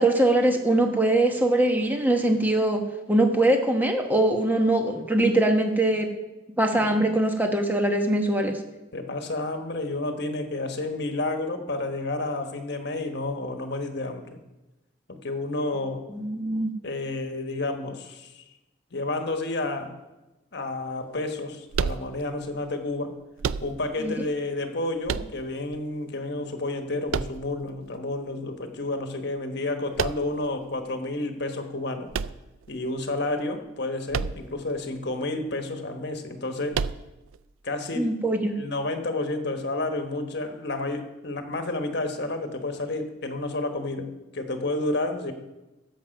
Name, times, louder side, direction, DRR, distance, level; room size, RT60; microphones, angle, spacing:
voice 1, 0.0-2.8 3.1-6.1 6.6-8.6 16.1-16.7 24.0-24.2 37.9-38.6, right 1 dB, 10° right, 4 dB, 1.1 m, -22 dB
voice 2, 6.7-7.1 8.9-14.4 15.1-16.0 16.8-18.4 18.9-19.9 20.5-23.2 23.6-32.1 32.7-36.8 37.6-38.1 38.6-45.3, left 2 dB, 55° left, 6 dB, 1.2 m, -30 dB
sound 1, 21.7-22.5 23.4-24.1 25.1-25.8 27.1-27.9 30.0-30.5 32.1-33.0 34.1-34.7 34.9-35.0 36.7-37.4, right 6 dB, 85° right, 0.4 m, -30 dB
13.5 x 7.4 x 5.2 m, 1.0 s
head